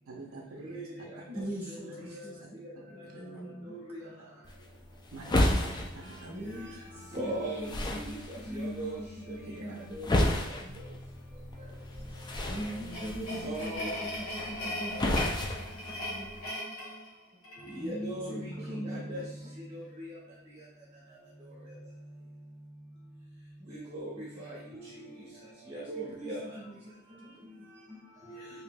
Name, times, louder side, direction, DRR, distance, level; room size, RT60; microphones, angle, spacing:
voice 1, 0.1-0.8 3.0-3.2 5.1-6.3 9.4-9.5, right 3 dB, 70° right, 0 dB, 0.6 m, -46 dB
voice 2, 1.2-2.6 2.9-4.4 6.2-10.3 10.6-10.8 12.4-16.3 17.8-19.3 23.6-23.8 24.3-24.5 25.2-28.0 28.2-28.4, equal, 10° right, -6 dB, 1.5 m, -42 dB
voice 3, 1.8-2.2 3.7-4.0 7.1-9.0 9.9-10.3 12.7-13.0 13.4-13.9 17.8-19.2 19.7-20.1 23.7-24.8 25.7-26.4 28.2-28.4, right 1 dB, 25° right, -6 dB, 0.9 m, -39 dB
sound 1, 4.4-16.5, left 1 dB, 20° left, 0.3 m, -33 dB
sound 2, 12.3-17.8, equal, 75° left, 1.0 m, -39 dB
4.8 x 2.8 x 2.2 m, 0.86 s
head